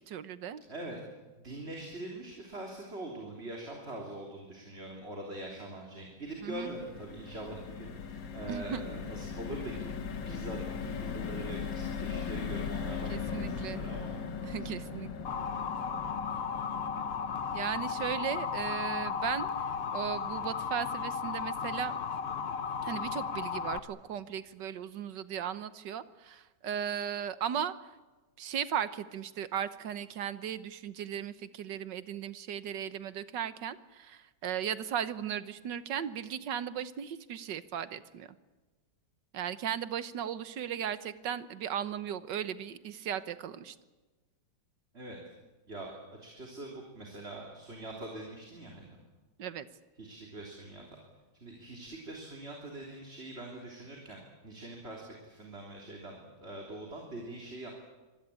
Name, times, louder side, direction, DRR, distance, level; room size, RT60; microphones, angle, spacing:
voice 1, 0.1-0.6 6.4-6.7 8.5-8.8 13.1-13.8 14.4-15.1 17.5-19.5 19.9-22.0 22.8-27.7 28.4-38.3 39.3-43.7 49.4-49.7, right 9 dB, 70° right, 14 dB, 1.6 m, -36 dB
voice 2, 1.4-9.9 10.2-14.1 14.4-14.5 44.9-45.2 45.7-49.0 50.0-51.0 51.4-57.7, right 1 dB, 30° right, 0 dB, 3.6 m, -43 dB
sound 1, 6.3-22.6 23.0-23.1 23.4-23.6, left 6 dB, 85° left, 2.2 m, -40 dB
Motor vehicle (road) / Siren, 15.2-23.8, left 6 dB, 45° left, 0.8 m, -35 dB
25.0 x 20.0 x 8.5 m, 1.2 s
omnidirectional pair, 2.0 m